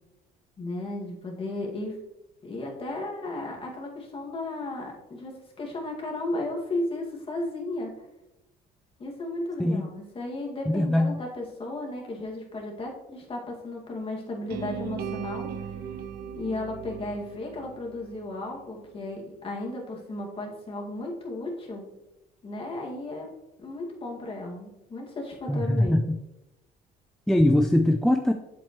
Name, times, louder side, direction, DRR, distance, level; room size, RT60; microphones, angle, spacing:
voice 1, 0.6-2.0 2.4-8.0 9.0-15.7 16.4-21.9 22.4-23.3 23.6-26.0, left 2 dB, 35° left, 0 dB, 2.2 m, -34 dB
voice 2, 10.7-11.2 25.5-26.2 27.3-28.3, left 1 dB, ahead, 4 dB, 0.5 m, -22 dB
sound 1, 14.5-18.6, right 7 dB, 70° right, 0.8 m, -37 dB
8.0 x 7.5 x 3.1 m, 0.93 s
cardioid pair, 110°, 17 cm